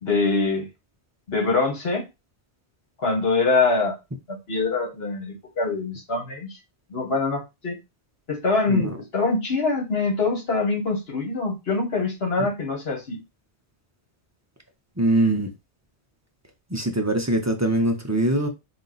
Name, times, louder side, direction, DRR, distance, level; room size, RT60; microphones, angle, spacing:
voice 1, 0.0-0.7 1.3-2.0 3.0-4.0 4.3-6.5 6.9-7.8 8.3-13.2, left 3 dB, 65° left, 1.6 m, -24 dB
voice 2, 15.0-15.5 16.7-18.5, right 1 dB, 20° right, 0.4 m, -22 dB
4.1 x 2.5 x 3.9 m
omnidirectional pair, 1.1 m